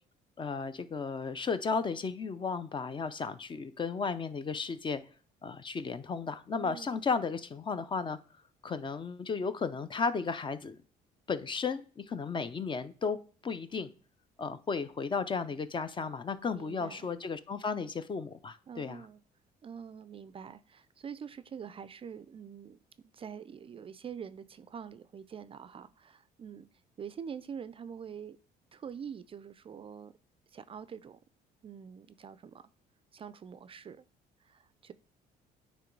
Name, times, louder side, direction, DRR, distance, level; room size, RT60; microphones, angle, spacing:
voice 1, 0.4-5.0 5.4-8.2 8.6-10.8 11.3-13.9 14.4-19.0, left 5 dB, 30° left, 0.5 m, -34 dB
voice 2, 6.6-6.9 16.5-17.1 18.7-19.2 19.6-26.7 27.0-28.4 28.7-30.1 30.5-31.2 31.6-32.6 33.1-34.0 34.4-34.9, right 7 dB, 35° right, 0.4 m, -45 dB
9.0 x 3.1 x 4.5 m
cardioid pair, 110°, 17 cm